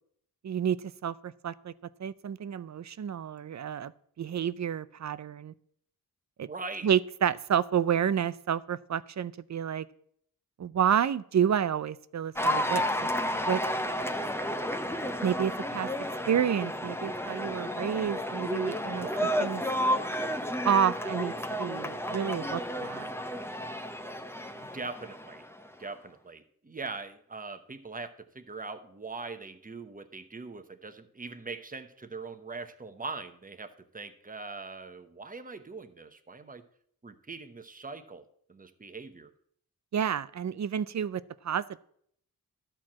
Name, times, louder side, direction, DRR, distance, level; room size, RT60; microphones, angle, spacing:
voice 1, 0.4-1.7 2.0-3.9 4.2-5.5 6.4-6.5 6.8-9.9 10.6-13.1 13.5-13.6 15.2-15.9 16.3-19.6 20.6-21.3 21.6-23.1 39.9-41.8, right 8 dB, 50° right, 17 dB, 0.5 m, -29 dB
voice 2, 6.4-6.9 18.9-19.4 24.5-25.4 25.8-36.6 37.0-39.3, right 3 dB, 20° right, 8 dB, 0.9 m, -42 dB
Cheering / Applause, 12.4-25.7, equal, 5° left, 0.7 m, -32 dB
12.5 x 4.5 x 7.4 m, 0.65 s
wide cardioid pair, 100°, 37 cm